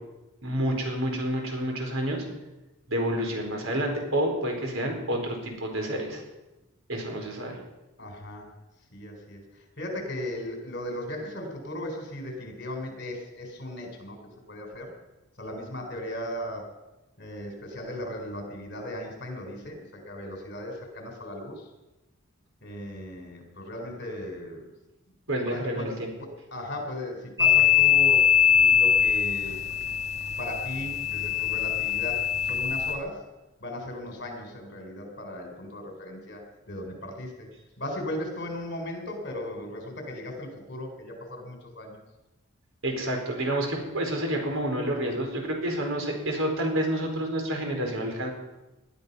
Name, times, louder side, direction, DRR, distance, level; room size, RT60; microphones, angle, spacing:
voice 1, 0.4-2.2 2.9-6.2 6.9-7.6 25.3-26.1 42.8-48.3, right 1 dB, 75° right, 2 dB, 4.5 m, -29 dB
voice 2, 8.0-8.5 8.9-9.4 9.8-14.2 14.5-14.9 15.4-16.6 17.2-19.8 20.1-21.6 22.6-24.6 25.5-25.9 26.2-29.6 30.4-33.2 33.6-36.4 36.7-37.5 37.8-42.0, left 1 dB, 55° left, 3 dB, 4.2 m, -37 dB
sound 1, 27.4-32.9, left 8 dB, 15° right, 2.2 m, -22 dB
20.0 x 12.0 x 5.6 m, 1.0 s
head